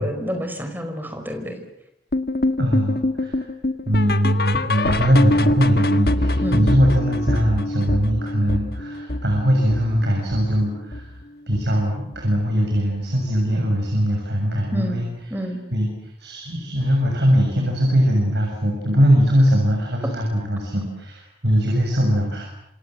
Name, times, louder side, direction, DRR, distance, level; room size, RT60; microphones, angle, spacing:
voice 1, 0.0-1.6 6.4-6.8 14.7-15.0 15.3-15.6, equal, 10° right, 5 dB, 5.0 m, -28 dB
sound 1, 2.1-11.2 11.5-11.8 12.1-12.2 12.7-12.8 13.4-13.5, left 1 dB, 60° left, 1.4 m, -24 dB
voice 2, 2.6-3.4 3.9-11.1 11.5-15.1 15.7-15.9 16.2-22.5, equal, 80° right, 0 dB, 7.1 m, -20 dB
27.5 x 26.5 x 7.8 m, 0.78 s
head